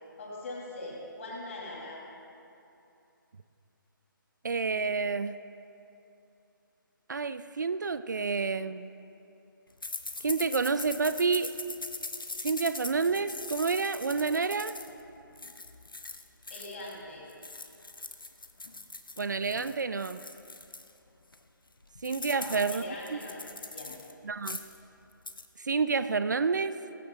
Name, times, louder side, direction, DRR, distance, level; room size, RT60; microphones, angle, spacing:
voice 1, 0.2-2.0 16.5-17.2 22.3-23.4 23.7-24.0, left 2 dB, 40° left, -4 dB, 3.9 m, -41 dB
voice 2, 4.4-5.4 7.1-8.9 10.2-11.5 12.4-14.7 19.2-20.2 22.0-22.8 23.1-23.2 24.2-24.6 25.6-26.7, right 4 dB, 55° right, 13 dB, 0.5 m, -29 dB
sound 1, 9.8-17.0 17.3-20.9 21.3-21.4 21.7-24.1 24.4-24.8 25.1-25.5, left 3 dB, 70° left, 1.0 m, -41 dB
19.5 x 16.5 x 2.6 m, 2.8 s
figure-of-eight pair, 145°, 12 cm